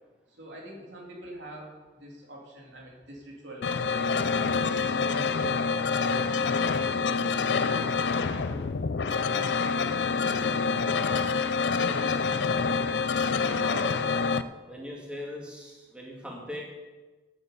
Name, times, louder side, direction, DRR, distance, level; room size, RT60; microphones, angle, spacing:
voice 1, 0.3-4.1 4.7-7.3 7.7-11.3 11.8-12.8, equal, 85° right, -2 dB, 3.2 m, -45 dB
sound 1, 3.6-14.4, left 5 dB, 80° left, 0.5 m, -27 dB
voice 2, 13.4-14.1 14.6-16.6, left 1 dB, 5° right, -2 dB, 2.1 m, -39 dB
9.7 x 9.4 x 6.8 m, 1.2 s
head